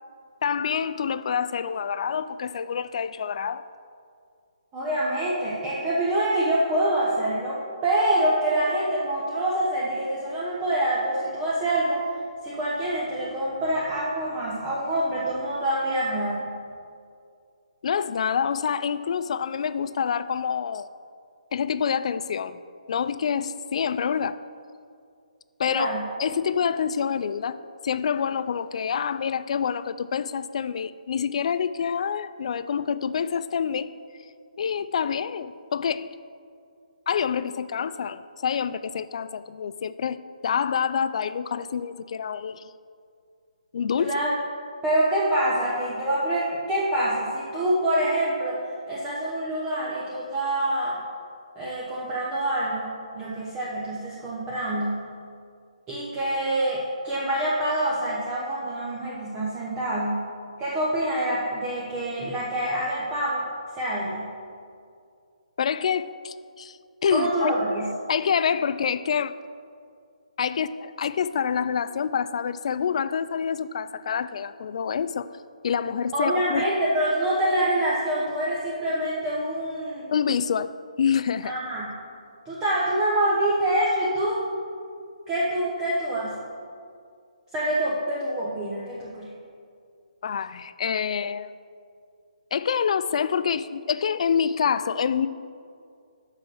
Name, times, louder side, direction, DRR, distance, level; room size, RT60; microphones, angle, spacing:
voice 1, 0.4-3.6 17.8-20.9 21.5-22.6 22.9-24.4 25.6-25.9 26.2-27.6 27.8-33.9 34.6-36.1 37.1-40.2 40.4-42.7 43.7-44.2 65.6-67.5 68.1-69.3 70.4-75.3 75.6-76.6 80.1-80.7 81.0-81.5 90.2-91.5 92.5-95.3, left 7 dB, 50° left, 14 dB, 0.3 m, -27 dB
voice 2, 4.7-12.0 12.4-16.5 25.7-26.0 44.0-44.4 44.8-48.6 48.9-51.0 51.6-52.9 53.1-55.0 55.9-60.3 60.6-63.4 63.7-64.3 67.1-67.9 76.1-80.1 81.4-81.9 82.5-84.5 85.3-86.4 87.5-89.3, right 1 dB, 15° right, -7 dB, 1.0 m, -26 dB
6.3 x 6.1 x 6.2 m, 2.3 s
hypercardioid pair, 150°, 4 cm